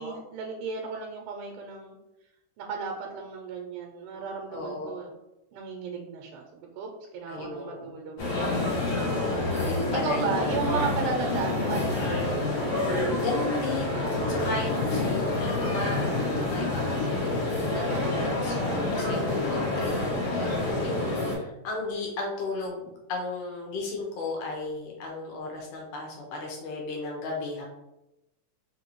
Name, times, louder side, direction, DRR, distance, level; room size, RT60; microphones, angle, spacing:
voice 1, 0.0-2.0 2.6-5.1 5.5-9.2 10.0-12.2 17.9-18.5, right 5 dB, 85° right, 1 dB, 2.1 m, -35 dB
voice 2, 4.5-4.9 7.3-7.9 9.5-10.6 13.2-16.1 16.4-18.5 18.9-27.7, left 2 dB, 75° left, -1 dB, 2.1 m, -35 dB
sound 1, 8.2-21.3, left 2 dB, 55° left, 1.7 m, -28 dB
5.0 x 2.6 x 2.9 m, 0.92 s
omnidirectional pair, 3.6 m